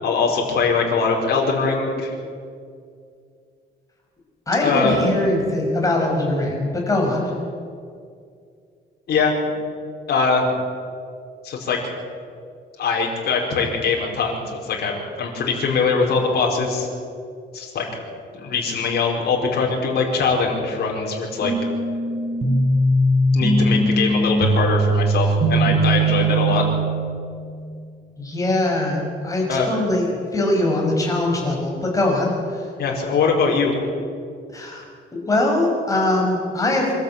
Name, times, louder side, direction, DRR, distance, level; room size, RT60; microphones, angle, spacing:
voice 1, 0.0-2.1 4.6-5.0 9.1-9.3 10.1-10.4 11.4-11.8 12.8-16.9 17.5-17.8 18.3-21.5 23.3-26.6 29.5-29.7 32.8-33.7, left 4 dB, 60° left, -1 dB, 4.8 m, -22 dB
voice 2, 4.5-7.3 28.2-32.7 34.5-34.8 35.1-36.9, left 1 dB, 20° left, -1 dB, 5.7 m, -22 dB
sound 1, 21.4-27.4, right 1 dB, 40° right, 4.1 m, -20 dB
25.0 x 13.0 x 9.0 m, 2.3 s
cardioid pair, 150°, 19 cm